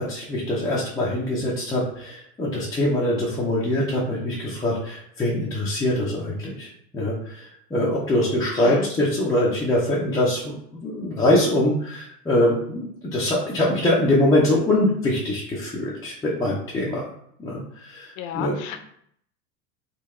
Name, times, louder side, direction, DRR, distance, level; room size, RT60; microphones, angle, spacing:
voice 1, 0.0-6.7 6.9-7.4 7.7-17.1 17.4-18.5, left 1 dB, 10° left, -7 dB, 0.4 m, -23 dB
voice 2, 18.2-18.8, left 9 dB, 50° left, 6 dB, 0.6 m, -33 dB
3.6 x 2.2 x 3.1 m, 0.68 s
hypercardioid pair, 110°, 46 cm